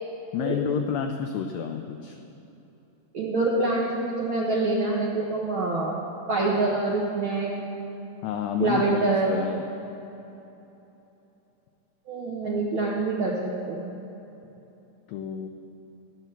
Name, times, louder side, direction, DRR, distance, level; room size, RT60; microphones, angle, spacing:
voice 1, 0.3-2.2 6.7-6.8 8.2-9.6 15.1-15.5, left 8 dB, 90° left, 5 dB, 1.5 m, -30 dB
voice 2, 3.1-6.0 6.3-7.6 8.6-9.3 12.1-13.9, right 3 dB, 65° right, -3 dB, 1.2 m, -26 dB
11.5 x 9.0 x 6.8 m, 3.0 s
omnidirectional pair, 3.7 m